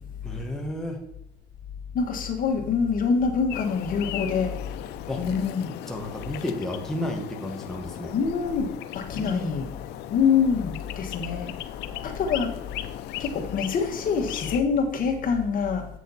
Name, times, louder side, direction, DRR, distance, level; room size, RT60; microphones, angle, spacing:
voice 1, 0.2-1.0 5.1-5.2 5.9-8.2 9.1-9.6 11.9-12.2, left 1 dB, 5° left, 0 dB, 1.4 m, -33 dB
voice 2, 1.9-4.5 5.2-5.7 8.1-8.7 8.9-9.7 10.1-11.5 12.0-12.5 13.2-15.8, left 6 dB, 55° left, 3 dB, 1.4 m, -25 dB
sound 1, 3.5-14.6, left 12 dB, 85° left, 0.6 m, -37 dB
8.0 x 6.4 x 4.1 m, 0.81 s
cardioid pair, 110°, 17 cm